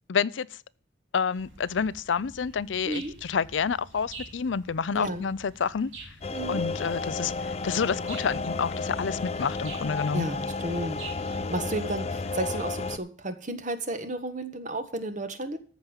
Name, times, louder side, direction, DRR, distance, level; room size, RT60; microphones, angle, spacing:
voice 1, 0.1-0.5 1.1-5.9 6.5-10.3, left 6 dB, 80° left, 0.5 m, -29 dB
sound 1, 1.3-12.1, right 3 dB, 90° right, 3.4 m, -48 dB
voice 2, 4.9-5.3 6.3-6.6 10.1-11.0 11.5-15.6, right 1 dB, 40° right, 1.5 m, -32 dB
sound 2, 6.2-13.0, left 3 dB, 35° left, 0.6 m, -32 dB
14.0 x 5.3 x 7.1 m
head